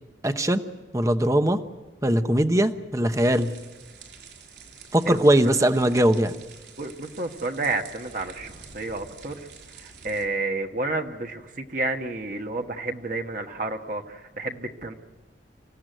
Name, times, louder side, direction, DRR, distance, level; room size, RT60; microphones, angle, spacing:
voice 1, 0.2-0.6 0.9-1.6 2.0-3.5 4.9-6.3, right 1 dB, 15° right, 9 dB, 0.9 m, -20 dB
sound 1, 3.1-10.3, right 5 dB, 75° right, 4.8 m, -47 dB
voice 2, 6.8-9.5 9.8-14.9, right 2 dB, 45° right, 4 dB, 1.3 m, -30 dB
26.5 x 15.5 x 9.2 m, 1.2 s
head